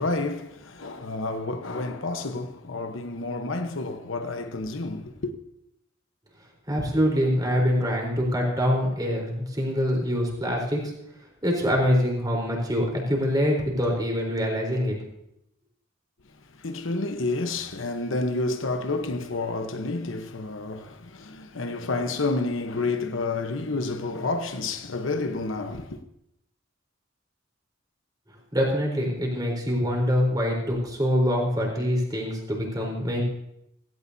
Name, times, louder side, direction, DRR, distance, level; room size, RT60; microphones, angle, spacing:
voice 1, 0.0-5.4 16.5-26.0, left 3 dB, 75° left, 1.1 m, -30 dB
voice 2, 6.7-10.9 11.4-15.0 28.5-33.2, equal, 20° right, 4.0 m, -24 dB
16.5 x 16.5 x 2.8 m
head